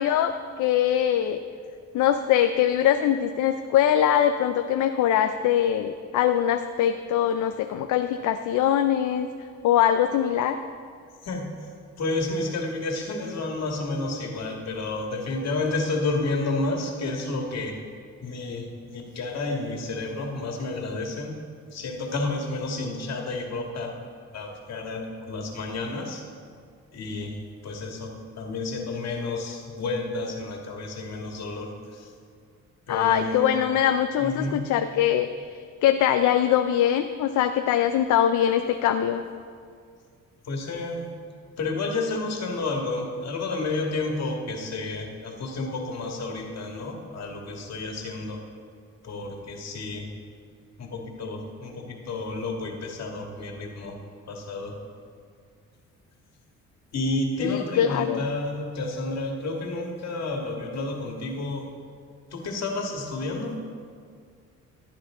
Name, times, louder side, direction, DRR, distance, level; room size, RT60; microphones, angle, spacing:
voice 1, 0.0-1.4 1.9-9.3 9.6-10.6 32.9-35.3 35.8-39.2 57.4-58.2, left 10 dB, 75° left, 8 dB, 0.6 m, -22 dB
voice 2, 12.0-17.8 18.2-21.4 21.7-23.9 24.3-26.2 26.9-27.3 27.6-32.1 32.9-33.6 34.2-34.6 38.4-39.4 40.5-41.1 41.6-48.4 49.0-50.1 50.8-54.0 54.3-54.8 56.9-61.7 62.3-63.6, left 2 dB, 60° left, 1 dB, 2.1 m, -31 dB
15.5 x 10.0 x 3.8 m, 2.1 s
cardioid pair, 90°, 30 cm